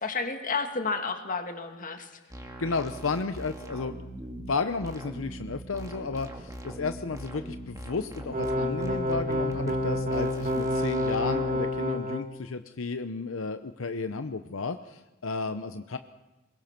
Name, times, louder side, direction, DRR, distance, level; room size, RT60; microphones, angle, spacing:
voice 1, 0.0-2.1, left 4 dB, 40° left, 6 dB, 2.1 m, -31 dB
sound 1, 2.3-11.6, right 1 dB, 15° right, 2.3 m, -41 dB
voice 2, 2.6-4.0 4.5-16.0, left 4 dB, 75° left, 9 dB, 0.8 m, -33 dB
sound 2, 8.3-12.2, left 1 dB, 40° right, 2.3 m, -28 dB
22.5 x 21.5 x 6.0 m, 1.1 s
head